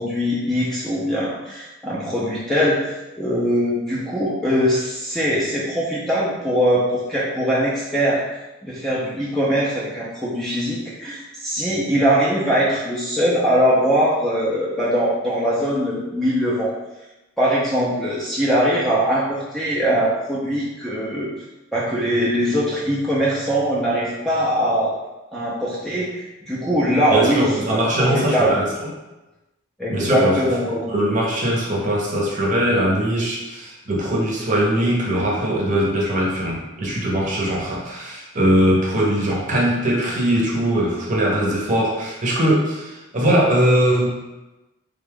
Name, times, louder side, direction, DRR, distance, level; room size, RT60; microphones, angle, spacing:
voice 1, 0.0-2.8 3.2-8.2 8.6-16.7 17.4-21.3 21.7-24.9 25.3-28.6 29.8-30.9, equal, ahead, -8 dB, 0.5 m, -21 dB
voice 2, 27.1-28.9 29.9-30.4 30.9-44.2, right 1 dB, 35° right, -4 dB, 0.8 m, -21 dB
3.6 x 2.3 x 3.4 m, 1.0 s
head